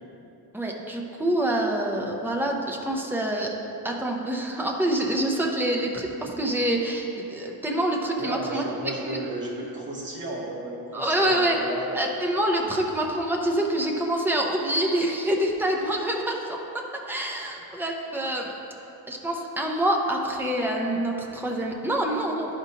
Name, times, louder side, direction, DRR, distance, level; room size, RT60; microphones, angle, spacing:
voice 1, 0.5-3.5 3.8-9.2 10.9-11.6 11.9-16.6 17.1-18.5 19.1-22.5, right 1 dB, 5° right, 0 dB, 0.4 m, -26 dB
voice 2, 8.2-12.1, right 1 dB, 30° right, -4 dB, 1.1 m, -33 dB
10.5 x 5.1 x 2.8 m, 3.0 s
wide cardioid pair, 175°, 38 cm